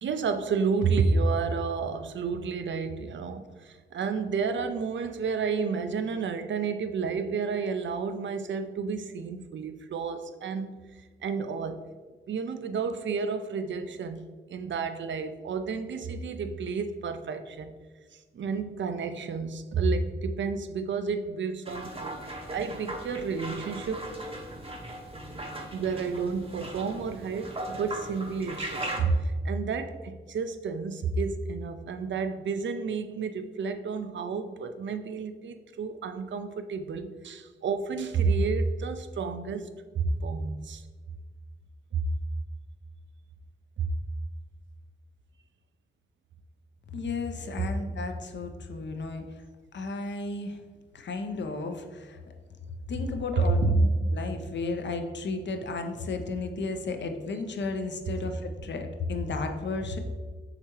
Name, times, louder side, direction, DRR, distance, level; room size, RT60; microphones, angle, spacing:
voice 1, 0.0-11.8 12.3-17.7 18.1-22.2 22.5-24.2 25.7-39.7 39.9-40.9 41.9-42.1 43.8-43.9 53.3-53.8, right 4 dB, 65° right, 9 dB, 0.4 m, -30 dB
sound 1, 21.7-29.0, right 1 dB, 30° right, 0.7 m, -38 dB
voice 2, 46.9-49.4 49.7-50.6 50.9-52.2 52.9-60.0, left 3 dB, 60° left, 5 dB, 0.5 m, -33 dB
4.8 x 3.4 x 2.9 m, 1.4 s
cardioid pair, 45°, 21 cm